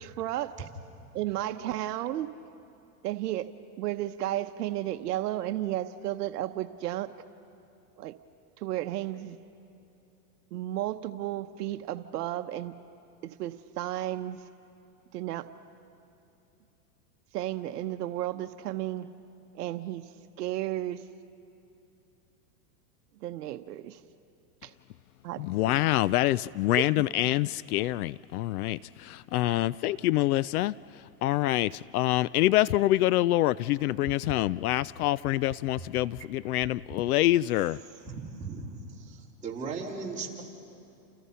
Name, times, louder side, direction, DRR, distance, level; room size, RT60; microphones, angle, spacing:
voice 1, 0.0-0.7 1.1-2.3 3.0-3.5 3.8-7.1 8.0-8.1 8.6-9.4 10.5-12.7 13.2-14.4 15.1-15.5 17.3-19.1 19.5-20.1 20.4-21.0 23.2-24.0 24.6-24.7 25.2-25.8 27.0-27.1, right 14 dB, 70° right, 1.0 m, -33 dB
voice 2, 25.4-30.7 31.2-37.8, left 16 dB, 65° left, 0.5 m, -26 dB
voice 3, 37.9-40.4, right 4 dB, 15° right, 4.1 m, -38 dB
29.5 x 28.5 x 5.6 m
supercardioid pair, 140°, 48 cm